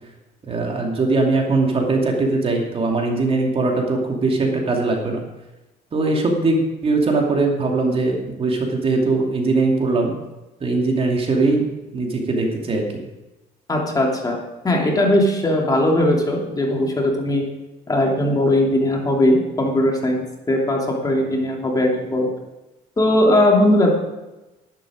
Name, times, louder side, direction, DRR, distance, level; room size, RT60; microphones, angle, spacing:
voice 1, 0.4-5.2 5.9-10.1 10.6-11.6 11.9-12.8, right 3 dB, 35° right, 1 dB, 2.7 m, -20 dB
voice 2, 13.7-14.4 14.6-17.4 17.9-22.3 23.0-23.9, left 1 dB, 20° left, 0 dB, 2.9 m, -19 dB
11.5 x 11.5 x 5.1 m, 1.0 s
cardioid pair, 110°, 17 cm